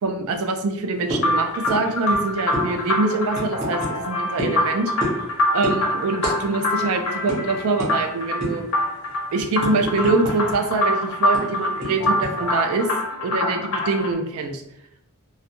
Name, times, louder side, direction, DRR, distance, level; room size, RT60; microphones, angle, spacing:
voice 1, 0.0-5.1 5.5-8.6 9.3-12.9 13.2-14.6, right 3 dB, 70° right, 6 dB, 0.4 m, -24 dB
sound 1, 1.1-1.3 1.7-1.8 2.1-2.2 2.5-2.7 3.3-3.9 4.4-4.6 5.0-5.3 5.6-5.8 6.2-6.4 6.7-6.8 7.3-7.4 7.8-7.9 8.4-8.7 9.1-10.6 10.8-10.9 11.3-12.3, equal, 30° right, 0.9 m, -27 dB
sound 2, 1.2-14.1, left 1 dB, 75° left, 0.6 m, -25 dB
2.3 x 2.1 x 2.8 m, 0.77 s
head